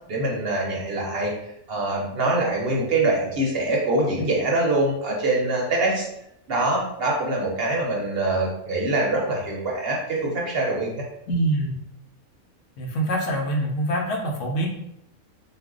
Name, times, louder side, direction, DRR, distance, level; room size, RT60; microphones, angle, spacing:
voice 1, 0.1-1.3 1.7-6.0 6.5-11.0, right 2 dB, 55° right, -2 dB, 0.7 m, -24 dB
voice 2, 11.3-11.8 12.8-14.7, right 1 dB, 70° left, 0 dB, 0.9 m, -25 dB
2.4 x 2.1 x 3.6 m, 0.79 s
omnidirectional pair, 1.4 m